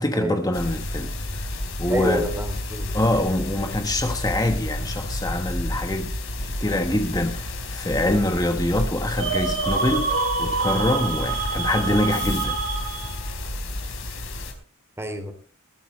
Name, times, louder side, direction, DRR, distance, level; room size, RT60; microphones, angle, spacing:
voice 1, 0.0-1.5 1.8-2.3 2.9-6.1 6.4-12.6, left 1 dB, 20° left, 1.3 m, -25 dB
sound 1, 0.5-14.5, left 1 dB, 65° left, 4.2 m, -31 dB
voice 2, 1.9-2.9 15.0-15.3, equal, 10° right, 2.8 m, -27 dB
sound 2, 9.2-13.3, right 4 dB, 75° right, 5.2 m, -27 dB
20.0 x 13.5 x 3.2 m
head